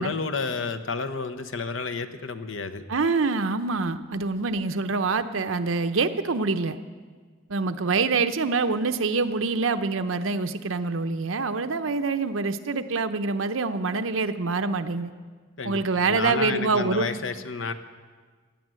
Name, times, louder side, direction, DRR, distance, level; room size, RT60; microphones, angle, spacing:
voice 1, 0.0-2.8 15.6-15.8 16.1-17.7, left 4 dB, 70° left, 9 dB, 0.9 m, -30 dB
voice 2, 2.9-6.8 7.5-15.1 15.6-17.1, right 4 dB, 85° right, 9 dB, 0.8 m, -25 dB
17.5 x 9.0 x 7.6 m, 1.5 s
head